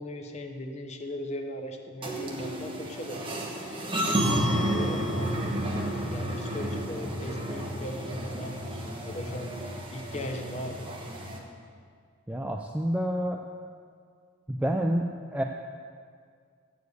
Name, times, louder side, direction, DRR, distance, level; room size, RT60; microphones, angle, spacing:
voice 1, 0.0-5.6 6.1-9.5 9.9-10.9, left 1 dB, 30° left, 3 dB, 0.9 m, -39 dB
sound 1, 2.0-11.4, right 1 dB, 25° right, 1.1 m, -31 dB
voice 2, 12.3-13.4 14.5-15.4, equal, 5° right, 2 dB, 0.3 m, -28 dB
8.0 x 7.1 x 8.1 m, 2.1 s
head